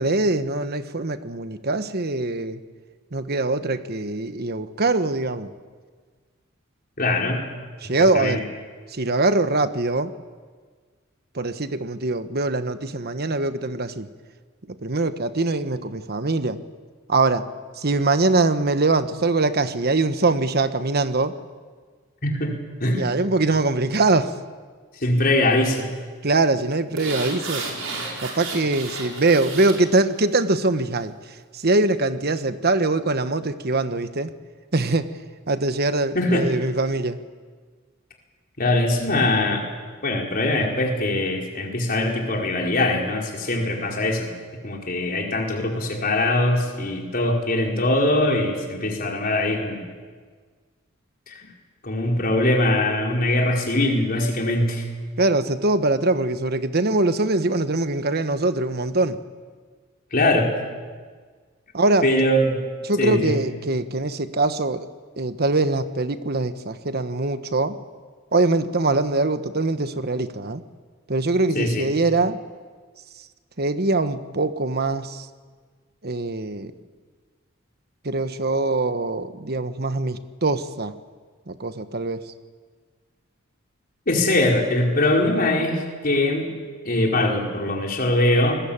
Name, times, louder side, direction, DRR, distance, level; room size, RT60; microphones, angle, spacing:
voice 1, 0.0-2.6 3.1-5.5 7.8-8.4 8.9-10.1 11.3-14.1 14.7-16.6 17.1-17.4 17.8-21.3 23.0-24.4 26.2-27.7 28.2-34.3 34.7-35.1 35.5-37.2 55.2-59.2 61.7-62.1 62.8-64.9 65.2-67.8 68.3-70.6 71.1-72.4 73.6-75.3 76.0-76.7 78.0-80.9 81.5-82.2, right 2 dB, 50° right, 10 dB, 1.3 m, -23 dB
voice 2, 7.0-7.4 8.1-8.4 22.2-23.0 25.0-25.9 36.1-36.5 38.6-39.7 40.0-44.3 44.6-49.8 51.3-51.5 51.8-54.8 60.1-60.5 62.0-62.6 63.0-63.3 71.5-71.8 84.1-86.5 86.8-88.6, left 1 dB, 45° left, 0 dB, 4.8 m, -22 dB
sound 1, 27.0-29.8 30.2-30.3, right 3 dB, 85° right, 6.5 m, -32 dB
28.5 x 20.5 x 8.9 m, 1.5 s
head